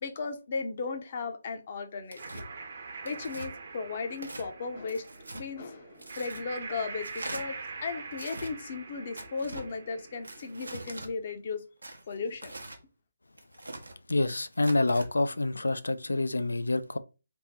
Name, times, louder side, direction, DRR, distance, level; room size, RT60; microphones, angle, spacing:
voice 1, 0.0-2.4 3.0-5.0 5.3-7.5 7.8-11.6 12.1-12.5, left 4 dB, 45° left, 0.7 m, -36 dB
Tearing, 2.1-2.5 3.1-3.5 4.1-4.5 4.9-5.4 6.0-6.4 7.0-7.4 8.1-8.5 9.2-9.7 10.2-11.1 11.8-12.8 13.4-14.0 14.5-15.1, right 2 dB, 85° right, 0.8 m, -42 dB
sound 1, 2.2-10.9, right 4 dB, 55° right, 0.8 m, -44 dB
voice 2, 14.1-17.0, left 2 dB, 85° left, 0.4 m, -27 dB
3.5 x 2.0 x 4.2 m
figure-of-eight pair, 150°, 0 cm